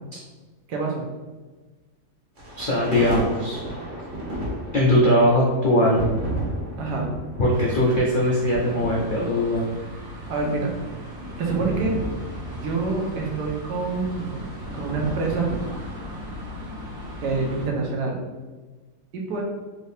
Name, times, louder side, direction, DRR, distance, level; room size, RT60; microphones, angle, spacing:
voice 1, 0.7-1.1 6.8-7.1 10.3-10.7 11.4-12.0 12.6-14.5 14.7-15.5 17.2-18.2 19.1-19.4, right 4 dB, 80° right, -1 dB, 1.4 m, -26 dB
sound 1, 2.4-16.6, right 1 dB, 40° right, 0.8 m, -34 dB
voice 2, 2.6-3.6 4.7-6.1 7.4-9.6, equal, 75° left, -4 dB, 0.4 m, -20 dB
sound 2, 7.5-17.7, equal, 60° right, 1.3 m, -39 dB
4.6 x 2.7 x 3.3 m, 1.3 s
omnidirectional pair, 1.8 m